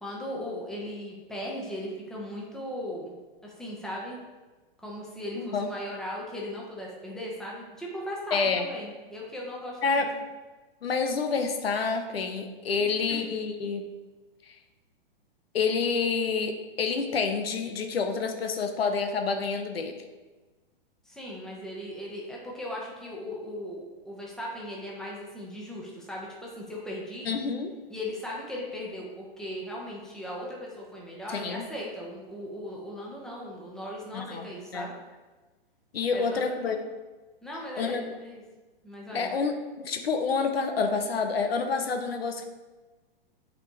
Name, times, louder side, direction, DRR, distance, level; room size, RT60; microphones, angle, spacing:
voice 1, 0.0-4.2 4.8-10.0 12.8-13.3 21.0-27.3 27.9-34.9 36.1-36.8 37.4-38.4 38.8-39.3, left 1 dB, ahead, -4 dB, 1.2 m, -38 dB
voice 2, 5.4-5.7 8.3-8.7 9.8-10.1 10.8-13.9 15.5-20.0 27.3-27.7 31.3-31.7 34.1-34.9 35.9-36.8 37.8-38.0 39.1-42.4, left 5 dB, 85° left, 6 dB, 0.9 m, -28 dB
8.5 x 4.3 x 3.2 m, 1.2 s
hypercardioid pair, 135°, 30 cm